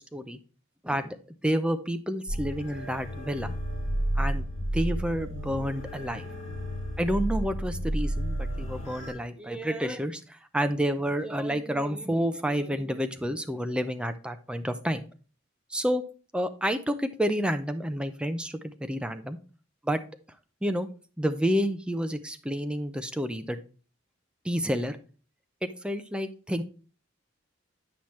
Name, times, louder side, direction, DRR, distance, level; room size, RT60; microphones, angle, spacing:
voice 1, 0.8-3.5 4.2-4.4 4.7-6.3 7.0-15.0 15.7-16.0 16.3-19.4 19.8-20.0 20.6-20.9 21.2-23.6 24.4-25.0 25.8-26.6, equal, 5° right, 8 dB, 0.5 m, -29 dB
sound 1, 2.3-9.1, right 1 dB, 35° left, 2.6 m, -32 dB
8.7 x 5.8 x 3.1 m, 0.37 s
head